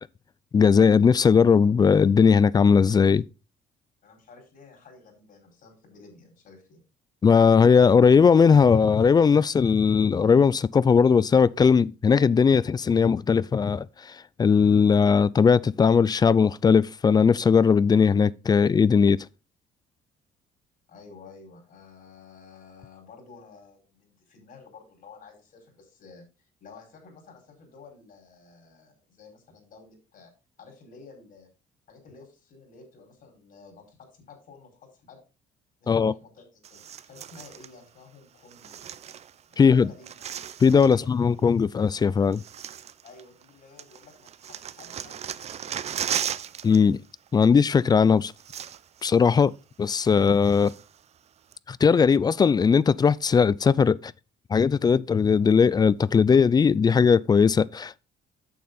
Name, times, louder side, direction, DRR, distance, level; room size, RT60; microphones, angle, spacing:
voice 1, 0.5-3.2 7.2-13.9 14.4-19.2 35.9-36.1 39.6-39.9 40.6-42.4 46.6-47.0 47.3-48.3 49.0-49.5 49.8-50.7 51.7-54.1 54.5-58.0, left 6 dB, 25° left, 0.4 m, -19 dB
voice 2, 4.0-6.8 20.9-26.3 26.6-30.3 30.6-31.5 31.9-35.2 35.8-38.8 39.5-40.3 40.8-41.0 43.0-45.8, left 4 dB, 60° left, 4.9 m, -51 dB
sound 1, 36.6-37.7 38.5-39.6 39.8-41.1 41.9-42.0 42.3-43.5 43.8-46.8 47.1-47.3 48.0-48.1 48.3-49.1 49.4-49.5 50.0-51.0 51.5-51.6, right 9 dB, 40° right, 0.5 m, -36 dB
8.6 x 6.8 x 3.9 m
cardioid pair, 110°, 17 cm